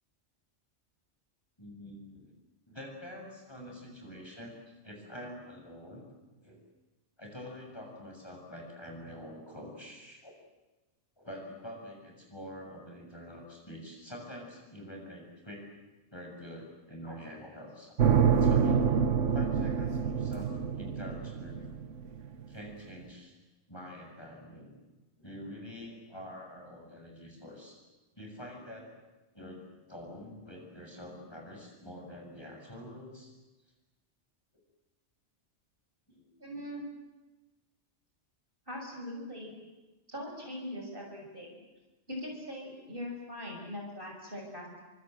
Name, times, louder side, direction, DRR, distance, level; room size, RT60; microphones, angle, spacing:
voice 1, 1.6-2.3 2.7-6.0 6.4-6.6 7.2-10.3 11.2-15.7 16.1-17.9 18.3-18.9 19.3-21.6 22.5-23.3 23.7-24.7 25.2-27.8 28.1-29.0 29.3-33.3 36.1-36.3, equal, 20° left, 0 dB, 6.9 m, -46 dB
sound 1, 18.0-22.2, right 7 dB, 85° right, 1.4 m, -26 dB
voice 2, 36.4-36.8 38.7-39.5 40.1-41.6 42.1-44.7, left 1 dB, 45° right, 0 dB, 6.1 m, -41 dB
29.5 x 25.0 x 7.8 m, 1.1 s
omnidirectional pair, 1.2 m